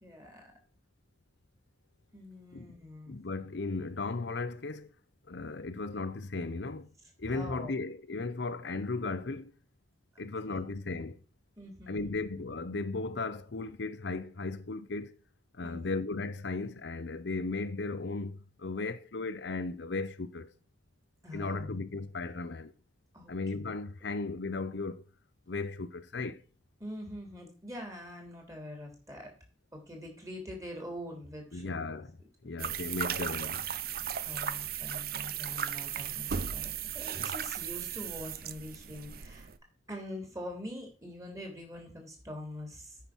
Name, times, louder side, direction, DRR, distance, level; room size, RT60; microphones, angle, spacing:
voice 1, 0.0-0.5 2.1-3.2 7.3-7.7 10.1-10.7 11.6-12.2 15.6-15.9 21.2-21.8 23.1-23.3 23.6-23.7 26.8-29.3 29.7-32.0 32.4-32.5 34.2-39.5 39.9-43.0, left 1 dB, 20° right, 3.3 m, -44 dB
voice 2, 3.1-4.9 5.3-6.9 7.2-9.5 10.2-11.2 11.9-15.2 15.5-20.5 21.3-22.7 23.3-25.0 25.5-26.4 31.5-32.2 32.4-33.7, left 3 dB, 75° left, 0.7 m, -36 dB
sound 1, 32.6-39.6, right 8 dB, 55° right, 0.6 m, -36 dB
9.2 x 5.8 x 6.2 m
head